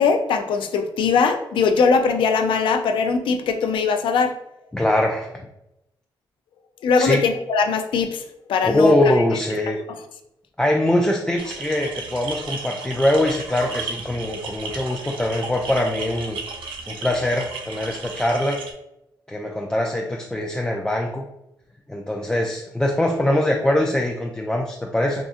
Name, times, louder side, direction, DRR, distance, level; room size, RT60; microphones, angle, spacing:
voice 1, 0.0-4.4 6.8-8.2 8.5-9.0, left 5 dB, 80° left, 6 dB, 0.4 m, -20 dB
voice 2, 4.7-5.3 7.0-7.2 8.6-9.8 10.6-16.4 16.9-18.6 19.3-21.2 21.9-25.2, left 1 dB, 10° left, 0 dB, 0.3 m, -22 dB
sound 1, 11.4-18.7, right 4 dB, 85° right, 0.5 m, -34 dB
3.6 x 2.5 x 2.4 m, 0.86 s
cardioid pair, 90°, 8 cm